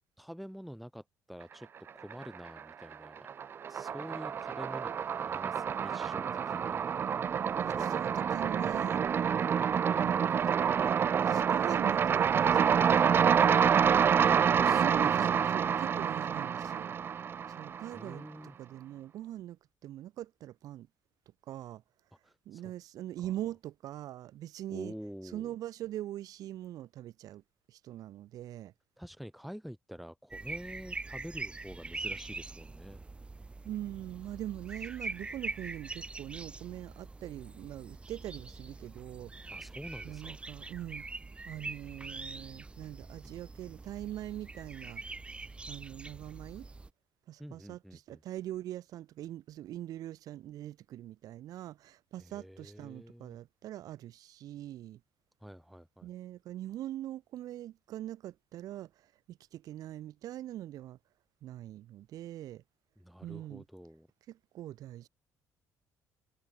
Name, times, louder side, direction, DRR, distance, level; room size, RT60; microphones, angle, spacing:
voice 1, 0.2-1.7 1.9-3.3 3.7-6.9 7.7-8.6 14.2-15.5 17.9-18.6 22.2-22.7 23.2-23.3 24.7-25.5 29.0-33.0 39.5-40.4 47.4-48.2 52.2-53.4 55.4-56.1 63.0-64.1, equal, ahead, 2.6 m, -47 dB
sound 1, 1.9-2.6 2.9-18.1, right 7 dB, 35° right, 0.4 m, -27 dB
voice 2, 7.6-9.1 9.9-14.2 14.7-16.9 17.5-18.3 18.6-20.9 21.5-21.8 22.5-24.9 25.3-27.4 27.7-28.7 33.6-39.3 40.0-41.1 41.5-45.0 45.7-46.7 47.3-55.0 56.0-61.0 61.4-62.6 63.2-63.6 64.3-65.1, right 13 dB, 65° right, 7.3 m, -42 dB
sound 2, 30.3-46.9, right 3 dB, 15° right, 5.1 m, -43 dB
cardioid pair, 130°, 7 cm